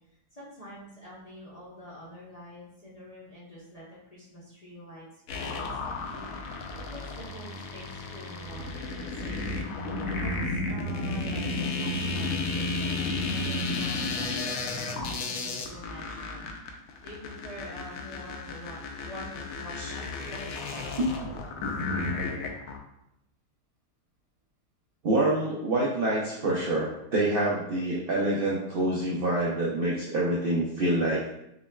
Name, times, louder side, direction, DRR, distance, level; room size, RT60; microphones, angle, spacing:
voice 1, 0.0-5.1 5.3-6.6 6.9-9.5 10.2-16.4 17.0-21.7, equal, 35° left, -8 dB, 0.6 m, -46 dB
sound 1, 5.3-22.8, left 3 dB, 70° left, 0.9 m, -33 dB
voice 2, 21.0-21.4 22.0-22.1 25.0-31.2, right 1 dB, 75° right, -4 dB, 0.5 m, -27 dB
5.9 x 2.2 x 2.2 m, 0.82 s
omnidirectional pair, 1.7 m